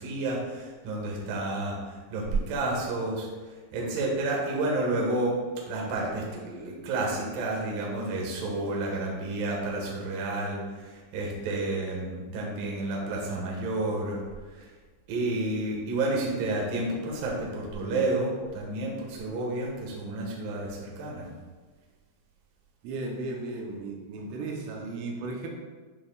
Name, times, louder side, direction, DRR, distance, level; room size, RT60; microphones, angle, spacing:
voice 1, 0.0-3.3 3.7-5.4 5.7-14.2 14.6-14.7 15.1-21.3, right 2 dB, 65° right, -2 dB, 2.4 m, -30 dB
voice 2, 22.8-25.5, right 3 dB, 85° right, 0 dB, 3.4 m, -35 dB
11.0 x 6.4 x 2.3 m, 1.4 s
omnidirectional pair, 5.9 m